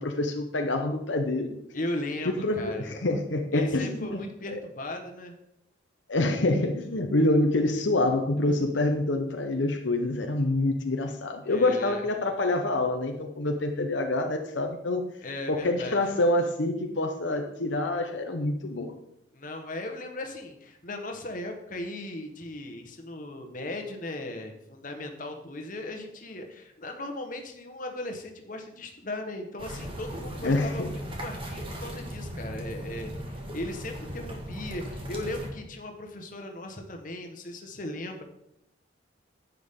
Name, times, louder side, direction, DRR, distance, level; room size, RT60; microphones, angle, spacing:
voice 1, 0.0-1.6 2.3-4.2 6.1-15.0 15.5-18.9 30.4-30.9, left 2 dB, 75° left, 3 dB, 0.9 m, -26 dB
voice 2, 1.7-2.9 3.5-5.3 11.4-12.0 15.2-16.0 19.3-38.2, left 1 dB, 45° left, 4 dB, 1.3 m, -37 dB
sound 1, 29.6-35.5, equal, 30° right, 1.7 m, -38 dB
11.0 x 8.4 x 3.7 m, 0.81 s
head